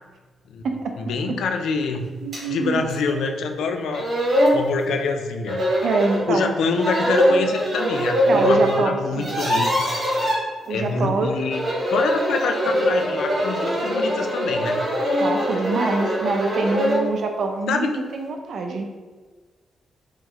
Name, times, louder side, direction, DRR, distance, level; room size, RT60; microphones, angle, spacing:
voice 1, 1.0-2.1 2.5-5.6 6.3-9.7 10.0-10.1 10.7-11.6 11.9-14.8 17.7-17.9, left 4 dB, 85° left, 5 dB, 0.4 m, -26 dB
voice 2, 2.2-2.8 3.1-3.2 5.8-6.5 8.3-9.3 10.7-11.3 15.2-18.9, right 4 dB, 60° right, 4 dB, 0.4 m, -25 dB
sound 1, 2.3-2.4 2.9-3.0 3.6-3.7 3.9-4.6 5.5-6.2 6.7-8.8 9.1-10.4 11.4-17.1, equal, 40° right, 1.5 m, -22 dB
3.7 x 3.1 x 3.0 m, 1.4 s
wide cardioid pair, 155°, 0 cm